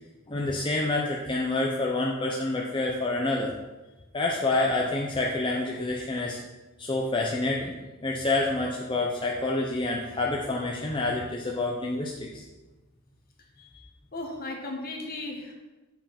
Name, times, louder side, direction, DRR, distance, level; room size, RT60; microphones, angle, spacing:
voice 1, 0.3-3.5 4.1-6.4 6.8-7.7 8.0-12.4, left 2 dB, 25° left, -2 dB, 0.7 m, -28 dB
voice 2, 14.1-15.5, left 2 dB, 45° left, 1 dB, 1.4 m, -36 dB
7.4 x 4.8 x 5.8 m, 1.2 s
head